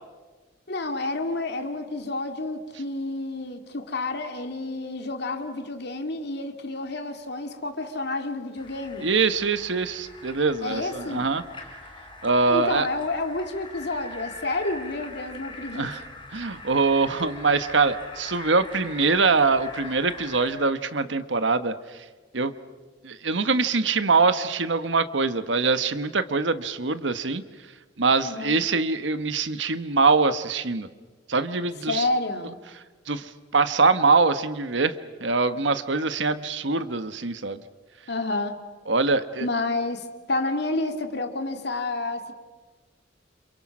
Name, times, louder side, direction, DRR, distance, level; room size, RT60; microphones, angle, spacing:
voice 1, 0.7-9.1 10.6-11.3 12.5-15.9 28.2-28.6 31.9-32.6 38.1-38.6 39.4-42.3, left 2 dB, 65° left, 6 dB, 2.6 m, -29 dB
sound 1, 8.6-20.5, left 2 dB, 30° left, 3.9 m, -42 dB
voice 2, 9.0-11.4 12.2-12.9 15.7-16.0 16.3-21.7 22.3-22.5 23.0-27.4 28.0-30.9 31.3-32.1 33.1-37.6 38.9-39.5, right 4 dB, 75° right, 11 dB, 1.3 m, -23 dB
29.5 x 27.5 x 6.2 m, 1.3 s
head